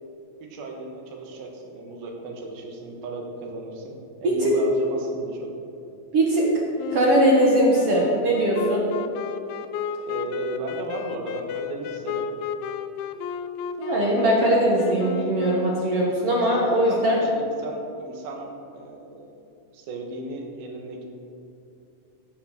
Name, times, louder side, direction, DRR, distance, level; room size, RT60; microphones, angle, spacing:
voice 1, 0.4-5.5 10.0-12.4 16.9-19.3 19.7-21.0, right 2 dB, 75° right, 1 dB, 3.3 m, -35 dB
voice 2, 6.1-6.5 6.9-8.8 13.8-17.2, right 1 dB, 55° right, -2 dB, 1.7 m, -20 dB
Wind instrument woodwind instrument, 6.8-16.2, left 8 dB, 80° left, 2.2 m, -34 dB
15.0 x 6.8 x 6.5 m, 2.7 s
omnidirectional pair, 4.3 m